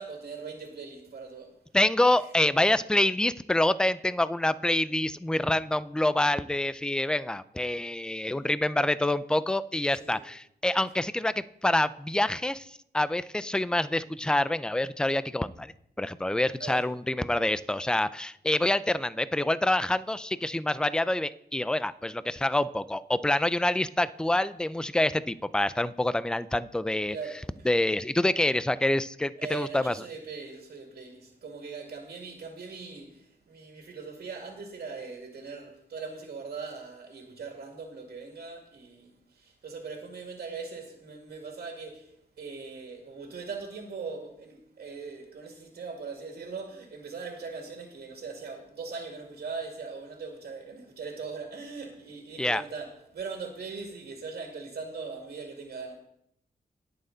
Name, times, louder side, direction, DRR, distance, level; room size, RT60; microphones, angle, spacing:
voice 1, 0.0-1.5 2.2-2.3 10.0-10.2 16.6-16.8 27.1-27.7 29.4-56.0, right 4 dB, 70° right, 2.1 m, -40 dB
voice 2, 1.7-27.2 27.7-30.0 52.4-52.6, left 1 dB, 5° left, 0.3 m, -26 dB
19.5 x 6.6 x 3.9 m
wide cardioid pair, 125°, 17 cm